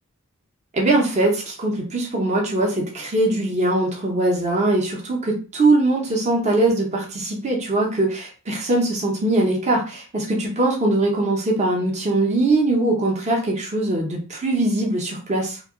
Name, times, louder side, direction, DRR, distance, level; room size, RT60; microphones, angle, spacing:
voice 1, 0.7-15.6, right 2 dB, 30° right, -1 dB, 0.6 m, -21 dB
2.8 x 2.2 x 3.5 m, 0.36 s
head